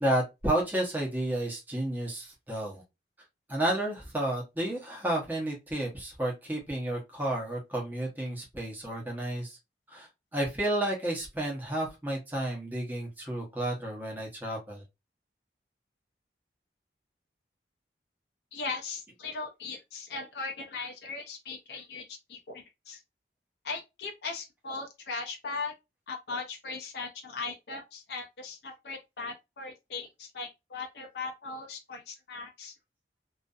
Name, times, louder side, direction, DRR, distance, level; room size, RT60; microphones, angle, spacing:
voice 1, 0.0-2.8 3.5-9.6 9.9-10.1 10.3-14.8, right 1 dB, 10° right, 0.8 m, -31 dB
voice 2, 18.5-23.0 23.6-25.7 26.1-32.7, left 4 dB, 70° left, 0.5 m, -38 dB
2.5 x 2.5 x 2.3 m
head